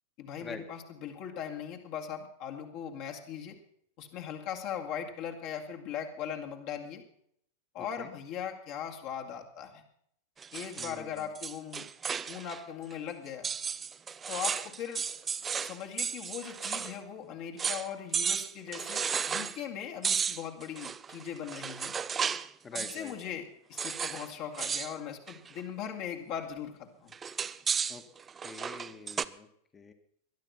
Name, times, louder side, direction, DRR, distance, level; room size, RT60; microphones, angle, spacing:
voice 1, 0.2-3.6 4.0-7.0 7.7-9.8 10.5-11.9 12.3-13.5 14.3-15.0 15.6-21.9 22.7-27.1, left 8 dB, 45° left, 2 dB, 2.3 m, -39 dB
voice 2, 7.8-8.1 10.8-11.3 22.6-23.4 27.9-28.0 28.4-29.9, left 4 dB, 20° left, 7 dB, 1.6 m, -46 dB
sound 1, 10.4-12.6 12.9-13.0 13.4-17.0 17.2-17.3 17.6-17.9 18.1-19.6 20.0-22.5 22.8-23.1 23.8-24.3 24.5-24.9 25.3-25.6 27.1-29.3, right 6 dB, 20° right, 0.6 m, -34 dB
20.5 x 11.5 x 5.7 m, 0.70 s
figure-of-eight pair, 90°, 0 cm